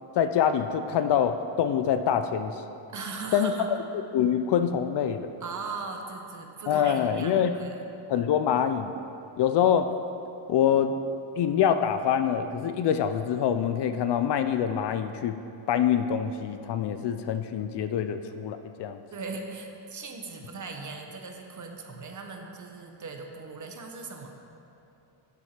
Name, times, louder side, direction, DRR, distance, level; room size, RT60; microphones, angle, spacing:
voice 1, 0.2-2.6 3.3-3.5 4.1-5.3 6.7-7.5 8.1-8.9 9.4-10.0 10.5-10.9 11.4-15.4 15.7-19.0, left 8 dB, 60° left, 9 dB, 0.5 m, -25 dB
voice 2, 2.9-3.7 5.4-7.9 19.1-24.3, right 4 dB, 40° right, 3 dB, 0.9 m, -39 dB
7.8 x 5.8 x 5.8 m, 2.8 s
cardioid pair, 110°, 49 cm